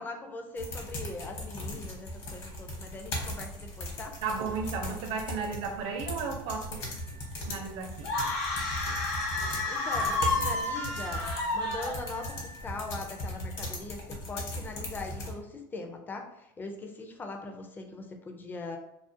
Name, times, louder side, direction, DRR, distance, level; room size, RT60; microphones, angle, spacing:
voice 1, 0.0-4.2 9.7-18.8, left 3 dB, 15° left, 4 dB, 0.4 m, -41 dB
sound 1, 0.6-15.3, left 1 dB, 55° left, 0.9 m, -38 dB
voice 2, 4.2-6.8 7.4-8.1, right 5 dB, 60° right, 3 dB, 0.5 m, -34 dB
sound 2, 6.8-13.6, right 7 dB, 90° right, 0.7 m, -49 dB
sound 3, 8.0-12.4, left 2 dB, 80° left, 0.8 m, -31 dB
2.4 x 2.3 x 2.6 m, 0.83 s
supercardioid pair, 130°, 11 cm